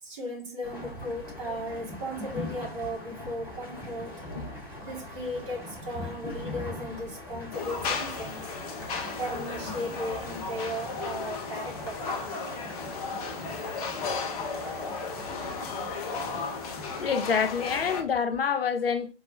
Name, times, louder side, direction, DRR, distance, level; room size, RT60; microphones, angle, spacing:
voice 1, 0.0-4.2 4.8-8.4 9.1-12.1, equal, 35° right, 2.1 m, -36 dB
sound 1, 0.6-18.0, left 1 dB, 5° right, 2.4 m, -41 dB
sound 2, 7.5-18.0, left 4 dB, 40° left, 0.9 m, -35 dB
voice 2, 17.0-19.1, left 6 dB, 70° left, 0.7 m, -27 dB
4.6 x 3.7 x 3.0 m
figure-of-eight pair, 120°, 30 cm